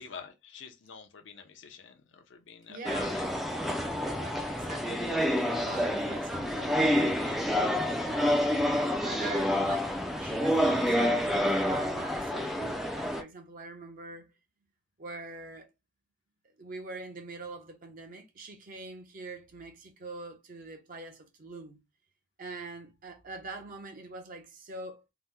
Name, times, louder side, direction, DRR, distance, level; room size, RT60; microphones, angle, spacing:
voice 1, 0.0-3.3, left 6 dB, 75° left, 0.6 m, -46 dB
voice 2, 2.7-3.2 4.0-7.6 8.1-8.6 9.0-14.3 15.0-15.7 16.6-21.8 22.4-25.0, right 3 dB, 50° right, 0.7 m, -44 dB
sound 1, 2.9-13.2, equal, ahead, 0.3 m, -28 dB
2.8 x 2.0 x 3.4 m
head